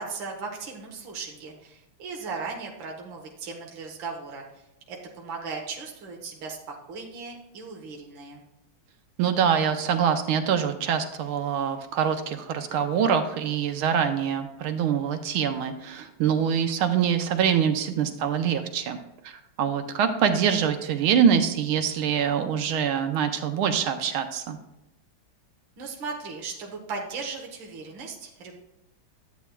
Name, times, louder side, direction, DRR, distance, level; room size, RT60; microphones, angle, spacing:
voice 1, 0.0-4.4 4.9-8.4 25.8-28.6, right 4 dB, 65° right, 0 dB, 2.0 m, -37 dB
voice 2, 9.2-19.0 19.2-24.6, right 8 dB, 80° right, 7 dB, 1.6 m, -24 dB
12.5 x 8.2 x 2.3 m, 0.87 s
omnidirectional pair, 2.3 m